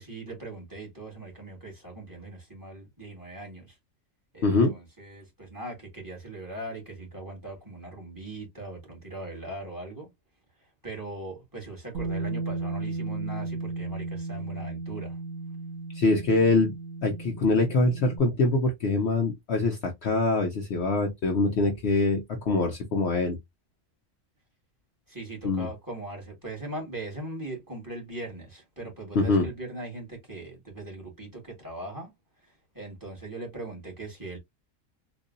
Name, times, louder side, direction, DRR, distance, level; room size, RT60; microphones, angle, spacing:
voice 1, 0.0-3.8 4.3-10.1 10.8-15.2 25.1-32.1 32.4-34.4, right 2 dB, 15° right, 2.0 m, -40 dB
voice 2, 4.4-4.7 15.9-16.7 17.0-23.4 25.4-25.7 29.1-29.5, left 3 dB, 60° left, 0.9 m, -24 dB
Bass guitar, 11.9-18.2, right 3 dB, 55° right, 1.8 m, -35 dB
3.9 x 2.6 x 2.5 m
omnidirectional pair, 1.4 m